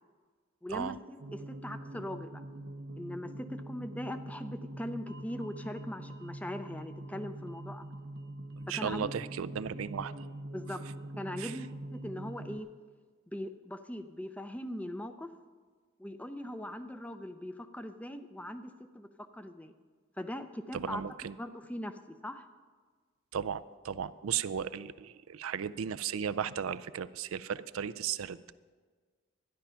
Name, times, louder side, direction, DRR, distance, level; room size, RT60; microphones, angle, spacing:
voice 1, 0.6-1.0 1.3-2.4 3.0-7.9 8.8-9.1 10.5-10.8 11.2-12.7 13.3-15.3 16.0-19.7 20.2-21.0 21.4-22.5, left 1 dB, 5° left, 9 dB, 0.5 m, -40 dB
sound 1, 1.2-12.6, right 1 dB, 50° right, 0.7 m, -44 dB
voice 2, 8.5-10.3 11.4-11.6 20.7-21.4 23.3-28.4, right 8 dB, 85° right, 15 dB, 0.4 m, -35 dB
12.5 x 10.5 x 5.7 m, 1.5 s
head